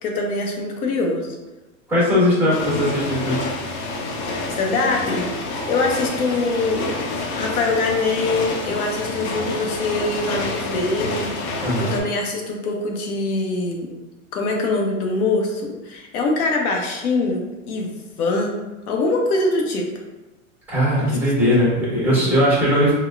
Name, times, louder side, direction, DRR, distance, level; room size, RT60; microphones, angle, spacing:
voice 1, 0.0-1.4 4.5-5.3 5.6-11.3 11.8-13.9 14.3-18.5 18.9-19.9 21.0-21.1 21.5-21.7 22.1-22.2, left 3 dB, 85° left, 1 dB, 0.7 m, -23 dB
voice 2, 1.9-3.4 11.6-11.9 20.7-22.9, equal, 5° right, -8 dB, 1.2 m, -19 dB
sound 1, 2.5-12.0, left 2 dB, 55° left, 0.6 m, -28 dB
3.8 x 2.2 x 2.3 m, 1.1 s
supercardioid pair, 140°, 43 cm